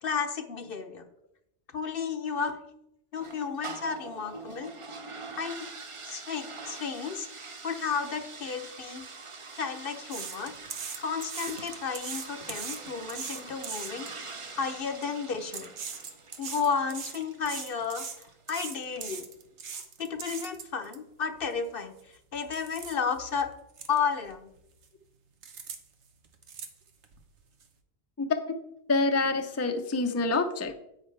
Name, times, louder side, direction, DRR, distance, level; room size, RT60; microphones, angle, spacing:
voice 1, 0.0-1.1 1.7-2.6 3.1-4.7 5.4-5.7 6.0-7.3 7.6-9.0 9.6-10.5 11.0-15.7 16.4-18.1 18.5-19.3 20.0-23.5 23.9-24.5, left 6 dB, 60° left, 7 dB, 0.9 m, -32 dB
sound 1, 3.1-18.4, right 4 dB, 35° right, 0.7 m, -44 dB
sound 2, 10.1-14.1 14.8-15.0 15.4-21.0 21.5-21.6 22.0-22.2 22.5-23.0 23.4-23.5 23.8-24.0 24.3-24.9 25.4-25.8 26.1-27.2 27.6-27.7, right 6 dB, 90° right, 1.2 m, -40 dB
voice 2, 28.2-28.6 28.9-30.7, left 3 dB, 20° left, 6 dB, 0.5 m, -27 dB
9.9 x 8.1 x 3.3 m, 0.81 s
omnidirectional pair, 1.1 m